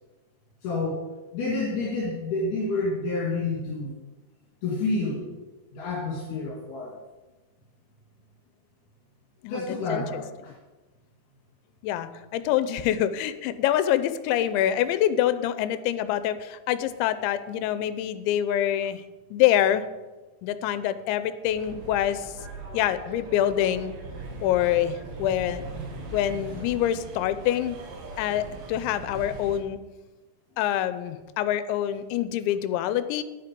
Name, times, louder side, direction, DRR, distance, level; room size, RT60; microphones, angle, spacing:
voice 1, 0.6-1.0 1.3-3.9 4.6-5.3 5.7-6.9 9.5-10.3, left 3 dB, 65° left, -5 dB, 4.1 m, -28 dB
voice 2, 9.4-10.2 11.8-19.0 19.3-19.8 20.4-22.3 22.7-23.9 24.4-25.6 26.1-27.8 28.2-29.8 30.6-33.2, left 11 dB, 85° left, 13 dB, 2.9 m, -25 dB
sound 1, 21.4-29.6, right 2 dB, 70° right, 3.8 m, -40 dB
10.5 x 10.0 x 5.2 m, 1.2 s
omnidirectional pair, 5.3 m